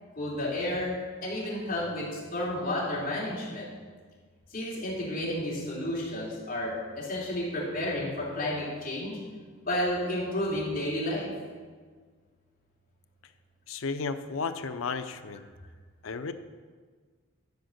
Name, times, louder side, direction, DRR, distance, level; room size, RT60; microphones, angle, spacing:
voice 1, 0.1-0.9 1.2-3.7 4.5-9.2 9.6-11.3, left 1 dB, 45° left, -6 dB, 3.3 m, -31 dB
voice 2, 13.7-15.5 16.0-16.3, left 4 dB, 90° left, 10 dB, 0.6 m, -34 dB
12.0 x 5.2 x 6.4 m, 1.5 s
head